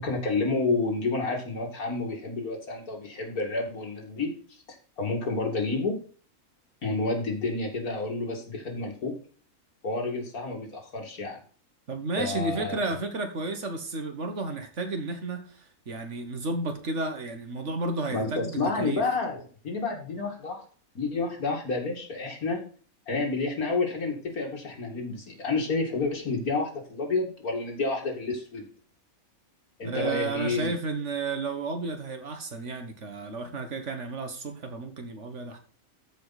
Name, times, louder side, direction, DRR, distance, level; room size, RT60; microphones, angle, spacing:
voice 1, 0.0-4.4 5.0-6.0 6.8-9.2 9.8-11.4 12.2-12.8 18.1-20.6 20.9-22.6 23.1-28.7 29.8-30.7, left 3 dB, 85° left, 1 dB, 2.8 m, -29 dB
voice 2, 11.9-19.0 29.8-35.6, right 3 dB, 55° right, 6 dB, 1.7 m, -32 dB
13.5 x 5.1 x 4.1 m, 0.42 s
omnidirectional pair, 1.5 m